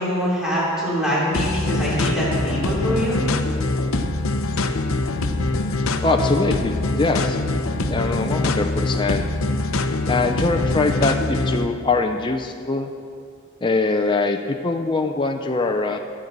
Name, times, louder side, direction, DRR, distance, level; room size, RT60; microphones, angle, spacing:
voice 1, 0.0-3.2, equal, 5° right, -9 dB, 3.2 m, -23 dB
sound 1, 1.3-11.7, left 2 dB, 65° left, 0.6 m, -23 dB
voice 2, 6.0-7.4 7.9-9.2 10.1-12.9 13.6-16.0, left 3 dB, 20° left, 4 dB, 0.4 m, -22 dB
21.0 x 7.5 x 4.0 m, 2.3 s
head